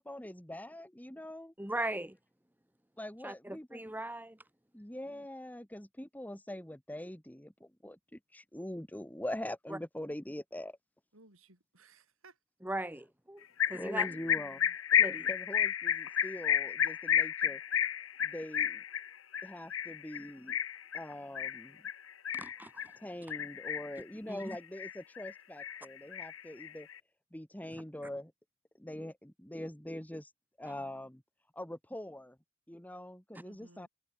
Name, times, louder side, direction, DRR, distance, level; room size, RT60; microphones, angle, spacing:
voice 1, 0.0-1.5 3.0-3.8 4.7-10.8 13.7-14.6 15.3-17.6 18.2-18.8 19.4-20.6 20.9-21.8 23.0-26.9 27.3-28.3 28.8-30.3 30.6-31.2 31.5-32.4 32.7-33.9, left 1 dB, 10° left, 1.5 m, -43 dB
voice 2, 1.6-2.2 3.2-4.4 9.7-9.8 12.6-13.4 13.7-14.1 15.0-15.3 22.3-22.7 24.3-24.4, right 1 dB, 10° right, 2.0 m, -38 dB
voice 3, 11.1-12.3 14.0-14.7 33.4-33.9, right 2 dB, 65° right, 7.2 m, -58 dB
sound 1, 13.6-22.9 23.3-24.0 24.4-25.3 25.6-26.9, left 9 dB, 65° left, 1.4 m, -32 dB
head